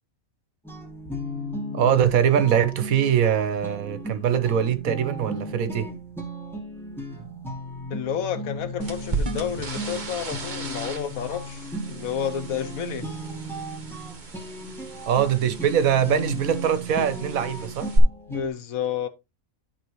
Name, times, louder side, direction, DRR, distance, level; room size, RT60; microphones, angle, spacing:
sound 1, 0.6-18.5, equal, ahead, 2.0 m, -36 dB
voice 1, 1.7-5.9 15.1-17.9, right 9 dB, 85° right, 1.4 m, -22 dB
voice 2, 7.9-13.1 18.3-19.1, left 8 dB, 85° left, 1.4 m, -30 dB
sound 2, 8.8-18.0, right 4 dB, 35° right, 1.3 m, -35 dB
10.5 x 5.9 x 3.1 m
omnidirectional pair, 1.4 m